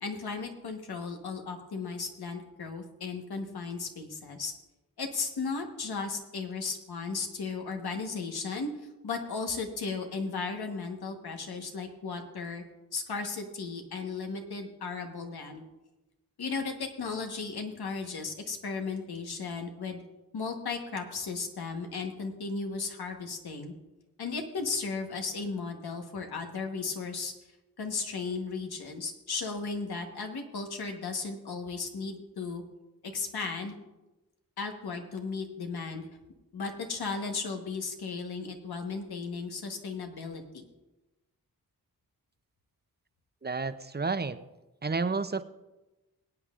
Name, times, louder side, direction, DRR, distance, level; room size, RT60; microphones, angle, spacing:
voice 1, 0.0-4.5 5.0-8.7 9.0-12.6 12.9-15.6 16.4-20.0 20.3-23.7 24.2-27.3 27.8-32.6 33.0-33.7 34.6-36.1 36.5-40.7, left 4 dB, 90° left, 4 dB, 1.3 m, -35 dB
voice 2, 43.4-44.4 44.8-45.4, right 4 dB, 25° right, 12 dB, 0.6 m, -30 dB
21.5 x 8.7 x 2.5 m, 1.0 s
cardioid pair, 50°, 37 cm